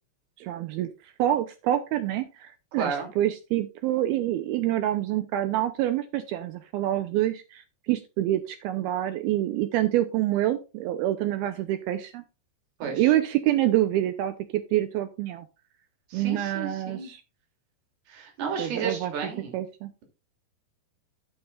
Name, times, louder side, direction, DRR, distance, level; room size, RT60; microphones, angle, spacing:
voice 1, 0.4-12.2 12.8-15.5 16.1-17.2 18.6-19.1 19.5-19.9, right 13 dB, 80° right, 10 dB, 2.3 m, -27 dB
voice 2, 2.8-3.1 12.8-13.0 16.1-17.1 18.1-19.5, right 5 dB, 65° right, 2 dB, 4.7 m, -32 dB
11.0 x 9.1 x 2.4 m, 0.29 s
omnidirectional pair, 5.0 m